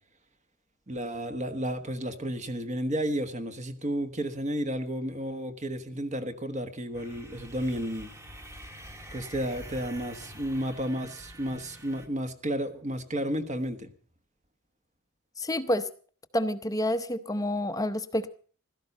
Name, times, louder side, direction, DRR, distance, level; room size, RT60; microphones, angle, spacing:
voice 1, 0.9-8.1 9.1-13.9, right 1 dB, 35° right, 1.3 m, -32 dB
snowmobiles pass by one by one from distance, 6.9-12.1, equal, 15° right, 1.4 m, -46 dB
voice 2, 15.4-15.9 16.3-18.3, left 1 dB, 15° left, 0.8 m, -28 dB
16.0 x 13.5 x 5.5 m
head